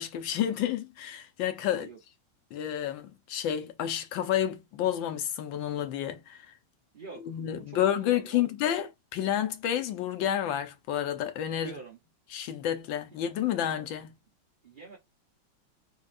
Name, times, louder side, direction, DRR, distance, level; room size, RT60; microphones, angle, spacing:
voice 1, 0.0-1.9 2.5-6.5 7.3-11.7 12.3-14.2, left 10 dB, 70° left, 1.4 m, -30 dB
voice 2, 1.7-2.0 6.9-8.5 11.5-12.0 14.6-15.0, right 5 dB, 40° right, 0.8 m, -46 dB
4.2 x 2.8 x 2.5 m
omnidirectional pair, 2.3 m